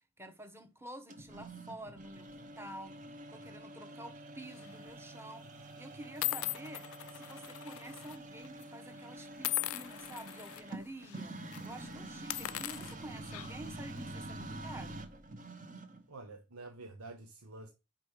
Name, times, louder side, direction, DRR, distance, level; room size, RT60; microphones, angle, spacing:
voice 1, 0.2-5.5 5.8-6.9 7.1-15.0, right 1 dB, 10° right, 1.2 m, -49 dB
sound 1, 1.1-16.1, right 2 dB, 35° right, 1.1 m, -47 dB
sound 2, 4.5-4.8 5.6-5.7 6.2-8.2 8.4-8.6 9.4-10.6 11.0-11.2 11.5-11.7 12.2-13.7, left 16 dB, 75° left, 0.4 m, -39 dB
voice 2, 16.1-17.7, right 2 dB, 80° right, 1.1 m, -48 dB
5.8 x 5.3 x 6.5 m
head